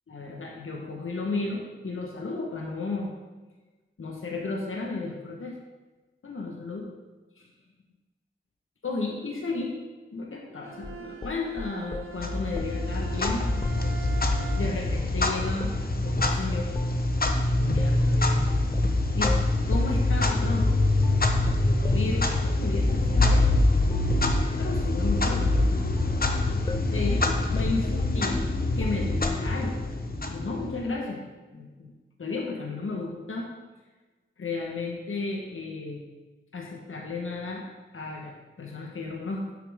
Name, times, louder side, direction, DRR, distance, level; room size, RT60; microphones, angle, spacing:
voice 1, 0.1-3.1 4.0-5.6 6.2-6.8 8.8-9.8 10.1-13.6 14.6-15.7 16.0-16.7 17.3-18.5 19.1-20.7 21.5-23.5 24.6-25.4 26.9-28.4 28.8-29.8 30.3-31.2 31.5-31.9 32.2-33.5 34.4-36.0 36.5-37.6 37.9-39.5, left 3 dB, 85° left, 0 dB, 1.3 m, -33 dB
Bowed string instrument, 10.6-15.0, right 5 dB, 90° right, 1.0 m, -43 dB
sound 1, 10.8-12.1 12.6-12.8 13.2-14.5 15.0-15.2 15.6-15.8 16.2-16.4 16.7-17.0 17.3-22.5 22.9-23.1 23.4-23.6 23.9-24.1 24.4-29.5, left 3 dB, 20° left, 0.3 m, -37 dB
Clock, 12.2-30.9, left 2 dB, 45° left, 1.1 m, -25 dB
10.0 x 7.7 x 3.6 m, 1.2 s
wide cardioid pair, 60°, 21 cm